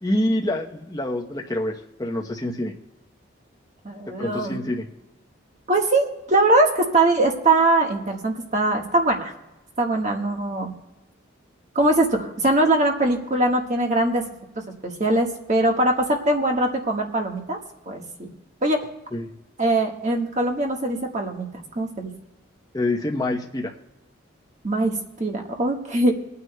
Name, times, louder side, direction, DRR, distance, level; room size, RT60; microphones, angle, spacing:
voice 1, 0.0-1.7 2.0-2.7 4.2-4.9 19.1-19.3 22.7-23.7, left 1 dB, 20° left, 0 dB, 0.8 m, -26 dB
voice 2, 3.8-4.6 5.7-9.3 9.8-10.7 11.7-14.2 14.8-17.6 17.9-18.3 18.6-18.8 19.6-21.5 21.7-22.1 24.6-26.2, right 2 dB, 35° right, 1 dB, 1.4 m, -22 dB
26.5 x 9.5 x 2.2 m, 1.0 s
head